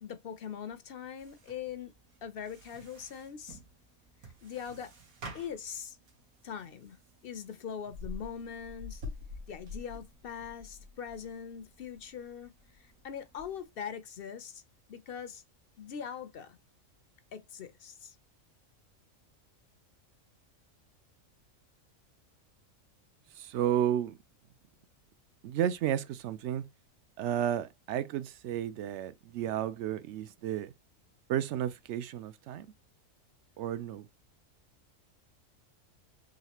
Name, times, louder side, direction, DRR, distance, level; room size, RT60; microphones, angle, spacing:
voice 1, 0.0-1.9 2.2-3.6 4.2-4.9 5.3-6.0 6.4-7.0 7.2-9.0 9.5-14.6 14.9-15.4 15.8-16.6 17.3-18.2, left 7 dB, 55° left, 0.7 m, -42 dB
sound 1, 1.2-13.7, left 2 dB, 85° right, 1.7 m, -49 dB
voice 2, 23.4-24.2 25.4-26.6 27.2-30.7 31.3-32.7 33.6-34.1, right 10 dB, 65° right, 0.8 m, -32 dB
4.0 x 3.2 x 2.9 m
omnidirectional pair, 1.4 m